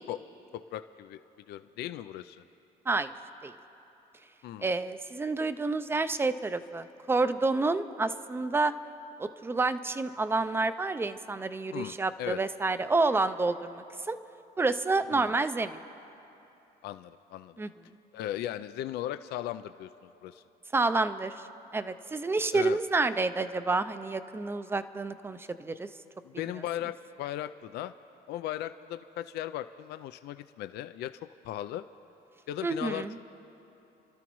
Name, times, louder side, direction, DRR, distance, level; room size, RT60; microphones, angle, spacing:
voice 1, 0.5-1.2 1.5-2.4 4.4-4.7 11.7-12.4 15.1-15.3 16.8-17.6 18.1-19.9 20.2-20.4 22.5-22.8 26.2-27.9 28.3-31.2 31.4-31.8 32.5-33.1, left 12 dB, 75° left, 10 dB, 0.4 m, -37 dB
voice 2, 4.6-8.7 9.2-14.2 14.6-15.8 17.6-17.7 20.7-21.3 21.7-25.9 32.6-33.2, right 3 dB, 15° right, 11 dB, 0.4 m, -29 dB
30.0 x 12.5 x 3.1 m, 2.9 s
cardioid pair, 110°, 17 cm